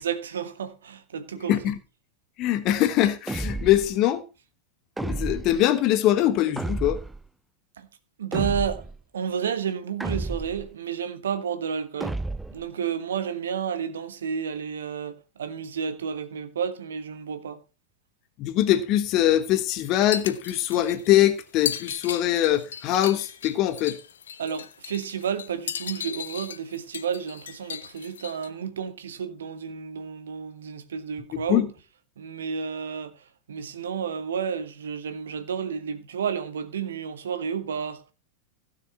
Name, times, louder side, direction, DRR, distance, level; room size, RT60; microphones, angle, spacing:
voice 1, 0.0-1.5 7.8-7.9 8.2-12.2 12.5-17.6 24.4-31.7 32.2-33.2 33.5-38.0, right 7 dB, 65° right, 1.4 m, -31 dB
voice 2, 2.4-4.2 5.0-7.0 18.4-24.0 31.5-31.7, left 13 dB, 40° left, 1.1 m, -22 dB
sound 1, 3.3-3.9 5.0-5.6 6.6-7.2 8.3-9.0 10.0-10.7 12.0-12.6, right 2 dB, 5° right, 0.6 m, -31 dB
sound 2, 19.8-28.5, left 8 dB, 65° left, 0.8 m, -36 dB
16.0 x 6.6 x 4.4 m
figure-of-eight pair, 90°, 0 cm